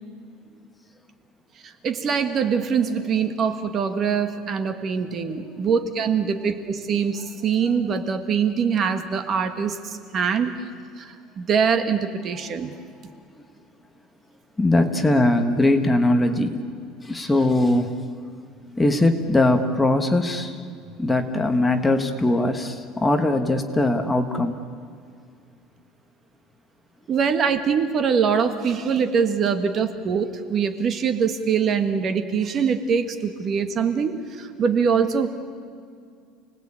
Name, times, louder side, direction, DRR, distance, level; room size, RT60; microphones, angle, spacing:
voice 1, 1.6-10.5 11.0-12.7 27.1-35.3, right 6 dB, 35° right, 8 dB, 1.6 m, -23 dB
voice 2, 14.6-16.6 17.0-17.9 18.8-20.6 21.0-24.5, left 1 dB, 10° left, 6 dB, 1.4 m, -20 dB
29.5 x 19.5 x 8.7 m, 2.2 s
cardioid pair, 150°, 0 cm